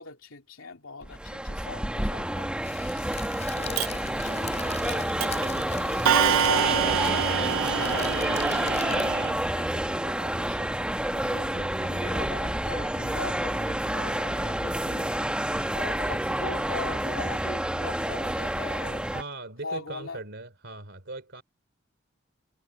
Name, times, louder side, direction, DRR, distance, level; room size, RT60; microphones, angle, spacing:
voice 1, 0.0-3.2 3.5-10.8 11.1-15.1 15.7-19.1 19.6-20.2, left 3 dB, 85° left, 3.1 m, -41 dB
sound 1, 1.0-19.2, right 1 dB, 5° right, 1.0 m, -29 dB
Crackle, 2.6-9.3, left 6 dB, 35° left, 5.6 m, -41 dB
Clock, 3.8-3.9 4.9-5.0 5.2-5.5 6.1-9.3, right 8 dB, 75° right, 0.6 m, -26 dB
voice 2, 19.1-21.4, right 2 dB, 60° right, 3.4 m, -39 dB
head